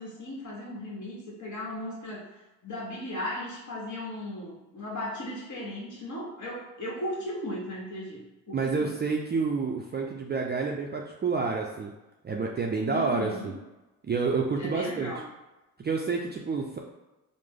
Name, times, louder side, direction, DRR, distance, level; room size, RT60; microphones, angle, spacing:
voice 1, 0.0-2.2 2.6-8.9 12.9-13.5 14.6-15.2, left 1 dB, 45° left, -4 dB, 1.3 m, -36 dB
voice 2, 8.5-11.9 12.2-13.5 14.1-15.1 15.8-16.8, right 4 dB, 25° right, 0 dB, 0.4 m, -29 dB
3.2 x 2.1 x 3.5 m, 1.0 s
supercardioid pair, 55°, 40 cm